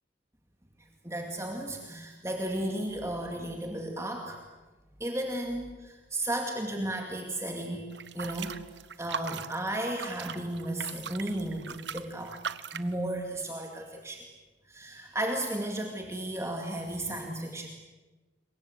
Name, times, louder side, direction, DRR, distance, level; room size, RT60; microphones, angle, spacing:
voice 1, 1.0-4.4 5.0-7.9 8.1-8.6 9.0-12.4 12.7-14.2 14.7-17.7, right 1 dB, 15° right, 2 dB, 2.2 m, -34 dB
sound 1, 7.9-12.9, right 6 dB, 60° right, 1.0 m, -39 dB
27.0 x 23.0 x 8.0 m, 1.2 s
head